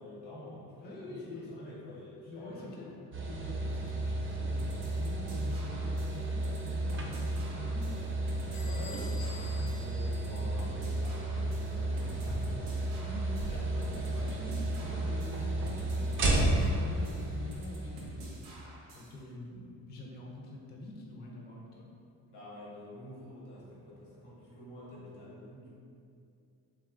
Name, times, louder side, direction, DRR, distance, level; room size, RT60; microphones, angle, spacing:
voice 1, 0.0-2.9 8.6-14.1 22.3-25.7, left 1 dB, 75° left, -6 dB, 1.0 m, -48 dB
voice 2, 0.8-1.5 2.3-3.0 3.3-8.9 13.0-13.4 13.7-18.4 18.9-21.9, left 2 dB, 25° left, -2 dB, 0.4 m, -45 dB
sound 1, 3.1-18.6, right 1 dB, 30° right, 0.5 m, -33 dB
sound 2, 4.6-19.2, right 1 dB, 90° right, 0.6 m, -50 dB
Bell / Squeak, 8.5-11.0, left 4 dB, 60° left, 0.7 m, -50 dB
2.7 x 2.3 x 2.4 m, 2.4 s
supercardioid pair, 60°, 40 cm